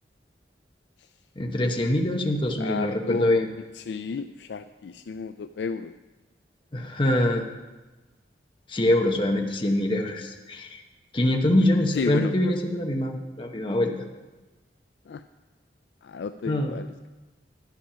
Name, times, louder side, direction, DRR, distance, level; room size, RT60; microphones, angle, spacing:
voice 1, 1.4-3.5 6.7-7.4 8.7-10.8 11.1-13.9 16.5-16.8, left 1 dB, 30° left, 2 dB, 0.9 m, -24 dB
voice 2, 2.6-3.5 3.7-5.9 11.5-12.5 15.1-15.2 16.0-17.1, left 5 dB, 70° left, 10 dB, 0.4 m, -32 dB
11.5 x 8.7 x 5.7 m, 1.2 s
head